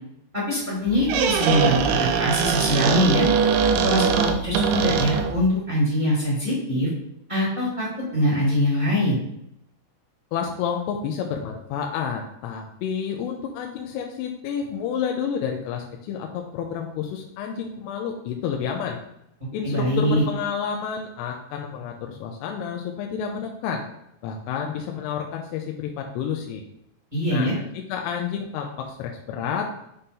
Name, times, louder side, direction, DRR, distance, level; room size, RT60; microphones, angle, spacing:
voice 1, 0.3-3.3 3.8-6.9 7.3-7.9 8.1-9.2 19.6-20.2 27.1-27.5, equal, 15° right, -8 dB, 1.5 m, -23 dB
Squeak, 0.9-5.5, right 6 dB, 80° right, 2.5 m, -22 dB
voice 2, 10.3-19.0 19.5-23.8 24.2-26.6 27.3-29.7, left 7 dB, 85° left, 1 dB, 2.7 m, -30 dB
6.7 x 2.9 x 5.4 m, 0.77 s
omnidirectional pair, 4.6 m